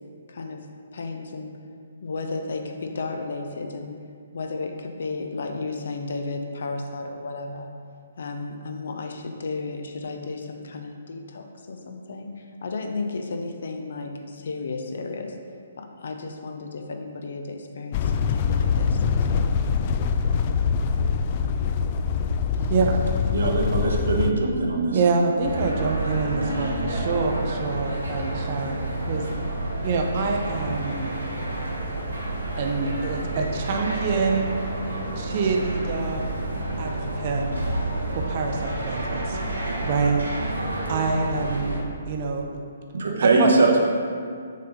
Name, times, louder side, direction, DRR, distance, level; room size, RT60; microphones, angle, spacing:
voice 1, 0.3-0.7 0.9-1.5 2.0-4.0 4.3-7.7 8.2-15.4 15.8-19.5, left 3 dB, 60° left, 4 dB, 0.7 m, -33 dB
sound 1, 17.9-24.3, left 6 dB, 35° left, 0.3 m, -24 dB
voice 2, 22.7-23.0 24.9-29.3 29.8-31.1 32.6-34.6 35.2-36.2 36.8-37.5 38.1-39.4 39.8-40.6 40.9-41.8 42.1-42.6 43.2-43.5, right 4 dB, 40° right, 2 dB, 0.7 m, -26 dB
voice 3, 23.3-25.0 42.9-43.9, right 3 dB, 65° right, 0 dB, 1.0 m, -21 dB
sound 2, 25.4-41.8, right 1 dB, 85° right, 1.3 m, -29 dB
6.4 x 3.4 x 5.4 m, 2.2 s
figure-of-eight pair, 130°, 0 cm